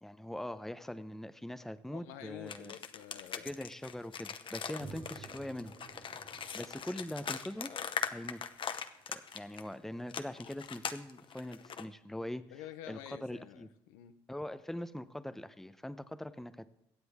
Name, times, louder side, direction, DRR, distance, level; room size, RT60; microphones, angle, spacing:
voice 1, 0.0-2.7 3.4-5.7 6.3-7.7 8.1-8.5 9.1-12.4 12.9-13.7 14.3-16.7, left 1 dB, 5° left, 12 dB, 0.7 m, -42 dB
voice 2, 1.9-3.5 12.5-14.2, left 12 dB, 90° left, 10 dB, 0.7 m, -49 dB
sound 1, 2.5-9.7 10.1-11.9, left 7 dB, 45° left, 0.8 m, -40 dB
sound 2, 4.8-9.5, right 4 dB, 55° right, 2.1 m, -54 dB
23.0 x 8.0 x 3.6 m, 0.81 s
supercardioid pair, 70°, 12 cm